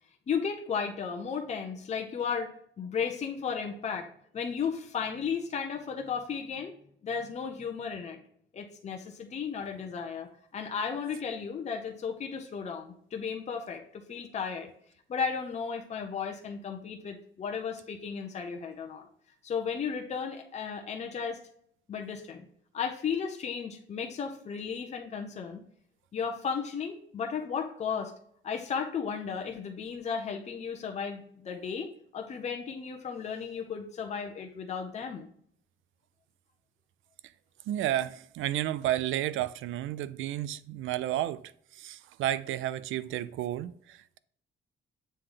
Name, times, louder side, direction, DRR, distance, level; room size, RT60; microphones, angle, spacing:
voice 1, 0.3-4.1 4.3-6.7 7.0-8.2 8.5-14.7 15.1-19.0 19.4-21.4 21.9-22.4 22.7-25.6 26.1-28.1 28.4-35.3, left 6 dB, 35° left, 0.8 m, -34 dB
voice 2, 37.7-44.2, right 13 dB, 80° right, 0.4 m, -32 dB
7.6 x 3.3 x 3.8 m
cardioid pair, 150°, 20 cm